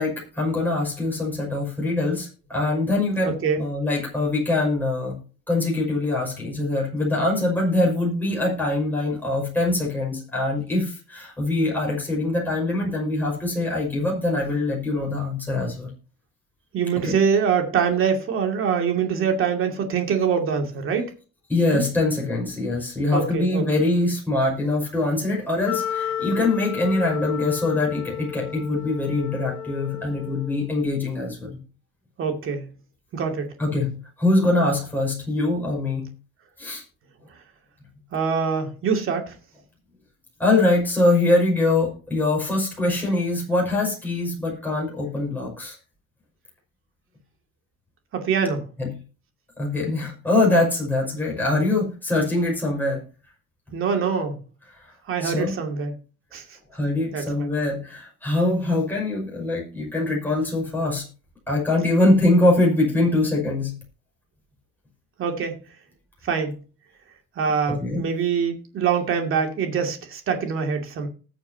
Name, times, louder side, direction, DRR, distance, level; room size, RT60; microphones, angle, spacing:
voice 1, 0.0-5.2 5.5-15.9 17.0-17.2 21.5-31.5 33.6-33.9 34.2-36.1 36.6-36.8 40.4-45.8 48.8-48.9 49.6-53.0 55.2-55.5 56.7-61.0 61.5-63.7 67.7-68.1, left 2 dB, 5° left, -2 dB, 5.6 m, -23 dB
voice 2, 3.2-3.6 16.7-21.1 21.7-21.8 23.1-23.6 32.2-32.7 33.1-33.5 38.1-39.3 48.1-48.6 53.7-54.4 55.1-55.9 56.3-56.4 57.1-57.5 65.2-65.5 66.2-66.6 67.4-71.1, right 6 dB, 45° right, 4 dB, 2.4 m, -24 dB
Wind instrument woodwind instrument, 25.6-30.7, left 9 dB, 65° left, 2.0 m, -32 dB
20.0 x 6.9 x 2.8 m, 0.36 s
cardioid pair, 160°, 30 cm